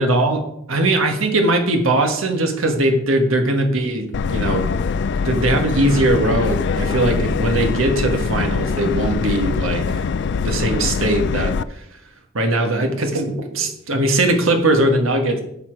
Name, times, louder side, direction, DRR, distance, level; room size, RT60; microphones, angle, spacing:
voice 1, 0.0-4.7 5.2-10.1 10.4-11.8 12.3-15.4, right 1 dB, 75° right, 4 dB, 1.5 m, -20 dB
Subway metro underground, 4.1-11.6, left 5 dB, 55° left, 0.4 m, -22 dB
11.5 x 6.9 x 4.6 m, 0.76 s
head